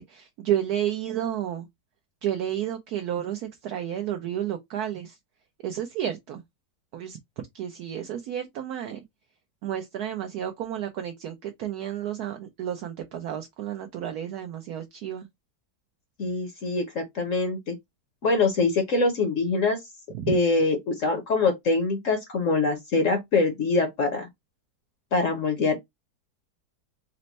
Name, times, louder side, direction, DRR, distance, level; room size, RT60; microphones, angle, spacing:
voice 1, 0.0-1.7 2.2-5.2 5.6-6.4 6.9-7.2 7.5-9.0 9.6-15.3 20.1-20.3, right 10 dB, 70° right, 1.1 m, -31 dB
voice 2, 16.2-17.7 18.2-19.8 20.3-24.3 25.1-25.8, left 3 dB, 55° left, 1.0 m, -24 dB
4.2 x 2.1 x 4.0 m
omnidirectional pair, 1.8 m